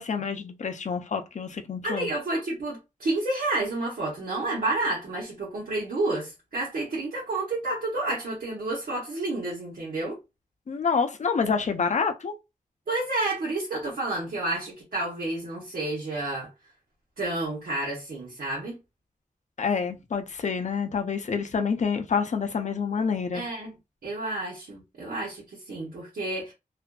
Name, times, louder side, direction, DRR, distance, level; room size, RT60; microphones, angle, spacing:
voice 1, 0.0-2.1 10.7-12.3 19.6-23.4, left 5 dB, 55° left, 0.4 m, -27 dB
voice 2, 1.8-10.2 12.9-16.5 17.2-18.8 23.3-23.8 24.0-26.5, right 2 dB, 80° right, 1.0 m, -30 dB
2.5 x 2.3 x 2.2 m
wide cardioid pair, 90°, 15 cm